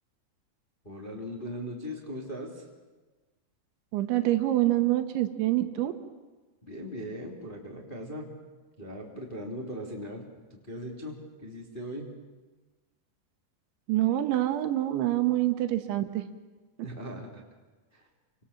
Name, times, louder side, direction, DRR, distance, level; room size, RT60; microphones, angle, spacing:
voice 1, 0.8-2.7 6.6-8.3 8.8-12.1 16.8-17.4 17.9-18.1, equal, 15° left, -1 dB, 2.3 m, -39 dB
voice 2, 3.9-5.9 13.9-16.2, right 14 dB, 75° right, 8 dB, 3.4 m, -26 dB
29.0 x 25.5 x 7.3 m, 1.2 s
omnidirectional pair, 5.5 m